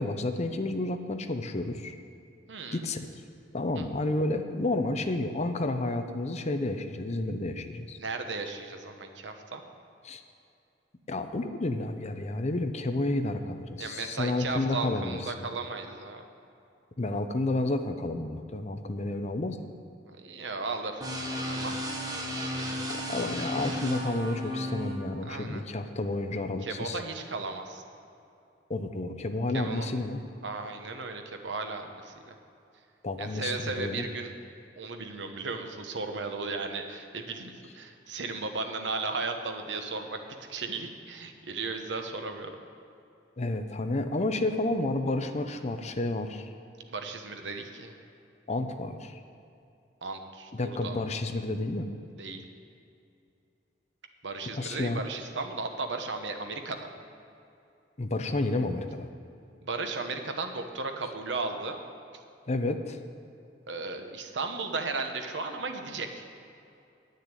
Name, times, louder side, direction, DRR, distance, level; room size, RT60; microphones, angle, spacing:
voice 1, 0.0-2.0 2.7-3.1 3.5-8.0 10.0-10.2 11.1-15.5 17.0-19.6 22.9-27.0 28.7-30.2 33.0-34.1 43.4-46.5 48.5-49.1 50.5-51.9 54.5-55.0 58.0-59.1 62.5-63.0, left 2 dB, 40° left, 8 dB, 0.7 m, -31 dB
voice 2, 2.5-2.8 3.7-3.9 8.0-9.6 13.8-16.2 20.2-21.2 21.5-21.8 22.3-22.5 25.2-25.6 26.6-27.8 29.5-29.9 30.4-32.3 33.2-34.3 34.8-40.2 40.5-42.5 46.9-47.9 50.0-51.0 52.2-52.4 54.2-56.9 59.6-61.8 63.7-66.2, right 3 dB, 90° right, 5 dB, 1.1 m, -35 dB
sound 1, 21.0-25.0, equal, 20° right, 1.4 m, -34 dB
10.0 x 6.5 x 9.0 m, 2.6 s
head